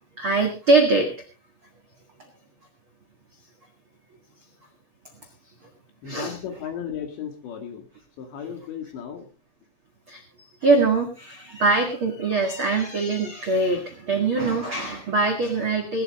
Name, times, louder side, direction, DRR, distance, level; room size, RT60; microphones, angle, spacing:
voice 1, 0.2-1.1 6.0-6.3 10.1-10.2 10.6-16.0, right 3 dB, 85° right, 2 dB, 1.1 m, -22 dB
voice 2, 6.0-7.9 8.2-9.3, left 8 dB, 65° left, 5 dB, 4.3 m, -35 dB
20.0 x 12.0 x 3.7 m, 0.33 s
omnidirectional pair, 5.9 m